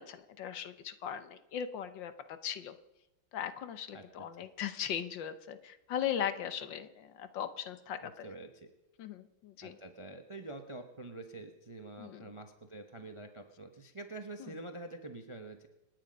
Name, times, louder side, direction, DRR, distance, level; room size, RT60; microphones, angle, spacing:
voice 1, 0.0-2.7 3.3-8.3 9.0-9.8 12.0-12.3 14.4-14.5, left 9 dB, 70° left, 11 dB, 1.5 m, -39 dB
voice 2, 3.9-4.3 8.0-8.7 9.6-15.7, right 2 dB, 25° right, 6 dB, 0.6 m, -46 dB
27.0 x 9.8 x 5.3 m, 0.98 s
omnidirectional pair, 2.2 m